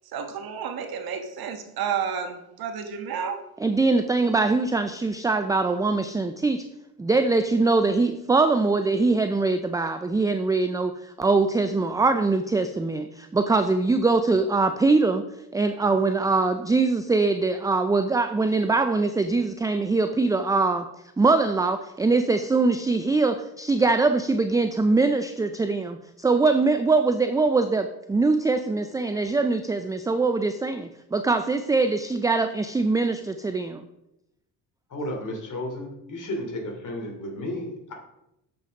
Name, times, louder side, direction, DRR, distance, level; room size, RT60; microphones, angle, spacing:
voice 1, 0.1-3.4, right 7 dB, 60° right, 6 dB, 1.3 m, -31 dB
voice 2, 3.6-6.7 7.0-15.2 15.5-20.9 21.2-33.9, right 3 dB, 10° right, 9 dB, 0.4 m, -22 dB
voice 3, 34.9-37.9, left 1 dB, 45° left, 2 dB, 2.9 m, -33 dB
7.4 x 6.0 x 5.2 m, 0.86 s
supercardioid pair, 80°, 42 cm